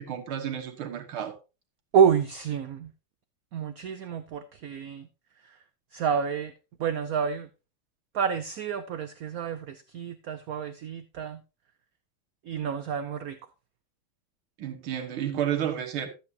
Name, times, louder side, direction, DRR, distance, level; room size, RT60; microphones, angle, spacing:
voice 1, 0.0-1.3 14.6-16.1, right 9 dB, 85° right, 2.2 m, -31 dB
voice 2, 1.9-2.9 3.5-5.1 5.4-5.6 5.9-6.5 6.8-7.5 8.1-11.4 12.4-13.5, right 7 dB, 70° right, 0.8 m, -28 dB
13.0 x 8.7 x 2.8 m
omnidirectional pair, 2.3 m